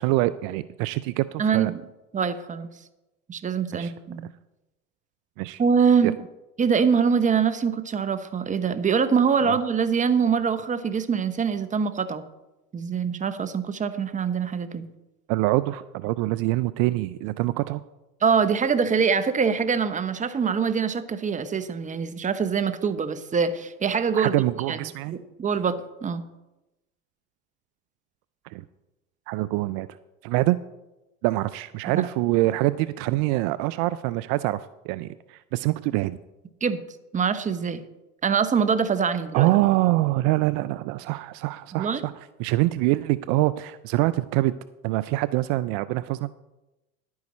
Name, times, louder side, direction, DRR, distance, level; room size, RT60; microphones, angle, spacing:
voice 1, 0.0-1.7 3.7-3.9 5.4-5.6 9.4-9.6 15.3-17.8 24.2-25.2 28.5-28.6 29.3-29.9 30.2-30.6 31.2-36.2 39.3-42.1 42.4-44.5 44.8-46.3, right 18 dB, 65° right, 16 dB, 0.5 m, -25 dB
voice 2, 1.4-1.8 2.1-2.7 3.3-4.3 5.6-6.2 6.6-12.3 12.7-14.9 18.2-24.4 24.7-26.2 31.9-32.1 36.6-36.8 37.1-37.8 38.2-39.5 41.7-42.0, right 6 dB, 20° right, 12 dB, 0.8 m, -24 dB
11.0 x 9.5 x 4.2 m, 1.0 s
supercardioid pair, 90°, 36 cm